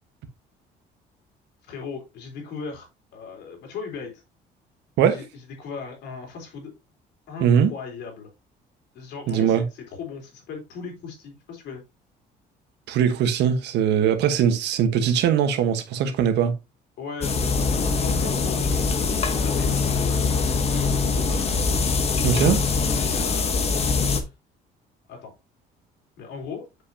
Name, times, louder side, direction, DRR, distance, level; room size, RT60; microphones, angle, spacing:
voice 1, 1.7-4.2 5.0-6.7 7.3-8.3 8.9-11.8 17.0-21.5 22.9-24.3 25.1-25.3 26.2-26.7, left 5 dB, 75° left, 3.7 m, -38 dB
voice 2, 7.4-7.7 9.3-9.6 12.9-16.6 22.2-22.6, right 8 dB, 75° right, 1.3 m, -21 dB
sound 1, 17.2-24.2, left 4 dB, 35° left, 1.2 m, -23 dB
7.7 x 5.8 x 2.8 m
cardioid pair, 125°, 18 cm